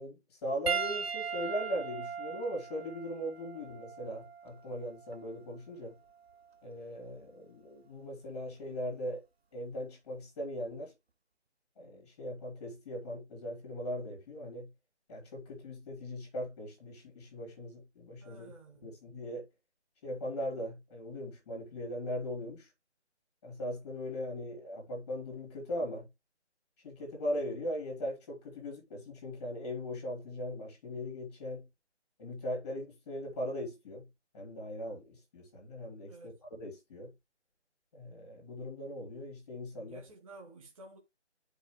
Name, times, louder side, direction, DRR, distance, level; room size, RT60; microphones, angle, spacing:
voice 1, 0.0-6.0 6.6-9.2 9.5-10.9 11.8-14.7 15.1-18.5 18.8-19.5 20.0-22.7 23.4-26.1 26.8-31.7 32.2-34.1 34.3-37.1 37.9-40.0, equal, 25° left, 2.9 m, -39 dB
Piano, 0.7-5.3 6.3-6.4 8.4-8.5, right 6 dB, 60° right, 1.0 m, -38 dB
voice 2, 18.2-19.1 36.1-36.4 39.7-41.0, right 2 dB, 30° right, 1.9 m, -53 dB
10.0 x 5.2 x 3.1 m
figure-of-eight pair, 165°, 35 cm